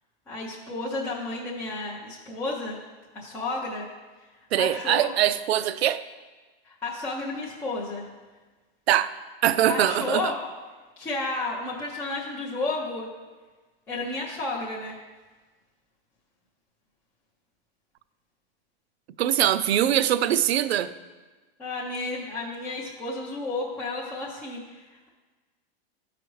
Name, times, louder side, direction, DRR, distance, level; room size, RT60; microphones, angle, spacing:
voice 1, 0.3-2.8 3.1-3.9 4.6-5.1 6.6-8.1 9.7-10.4 11.0-13.1 13.9-15.0 21.6-25.1, left 2 dB, 10° left, -5 dB, 0.4 m, -32 dB
voice 2, 4.5-6.0 8.9-9.1 9.4-10.3 19.2-20.9, right 11 dB, 85° right, 14 dB, 0.5 m, -22 dB
13.0 x 4.9 x 3.1 m, 1.3 s
supercardioid pair, 160°, 31 cm